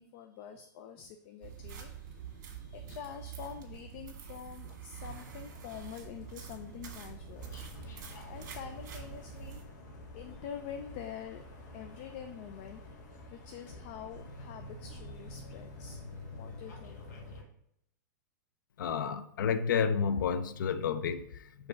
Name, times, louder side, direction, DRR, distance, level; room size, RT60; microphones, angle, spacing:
voice 1, 0.0-7.5 7.8-7.9 8.3-9.6 10.1-11.4 11.7-12.8 13.3-16.0 16.4-17.0, left 8 dB, 35° left, 0.4 m, -46 dB
sound 1, 1.4-9.6, right 8 dB, 60° right, 1.7 m, -46 dB
sound 2, 5.0-17.4, left 1 dB, 65° left, 1.5 m, -48 dB
voice 2, 18.8-21.7, left 6 dB, 85° left, 0.6 m, -31 dB
5.3 x 3.5 x 5.7 m
supercardioid pair, 170°, 10 cm